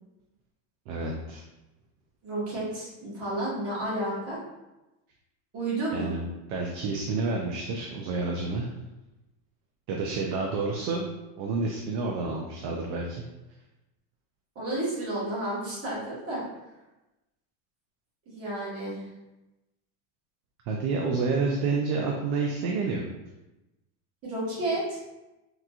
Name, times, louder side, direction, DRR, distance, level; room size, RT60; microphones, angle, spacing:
voice 1, 0.9-1.4 5.9-8.7 9.9-11.1 11.4-13.2 20.7-23.0, right 4 dB, 50° right, 0 dB, 0.4 m, -29 dB
voice 2, 2.2-4.4 5.5-6.1 14.5-16.4 18.3-19.1 24.2-25.0, right 1 dB, 30° right, -7 dB, 1.3 m, -31 dB
3.5 x 3.0 x 2.3 m, 1.0 s
supercardioid pair, 150°, 49 cm